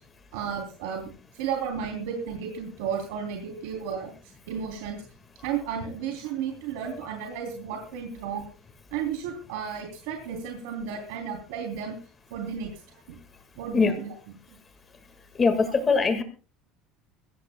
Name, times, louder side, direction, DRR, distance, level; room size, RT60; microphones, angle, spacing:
voice 1, 0.3-4.1 4.5-5.0 5.4-8.5 8.9-12.0 12.3-13.2 13.6-14.1 14.5-14.6, right 7 dB, 85° right, 3 dB, 3.2 m, -33 dB
voice 2, 15.2-16.2, left 4 dB, 20° left, 7 dB, 1.9 m, -23 dB
23.0 x 16.5 x 2.3 m, 0.35 s
cardioid pair, 170°, 0 cm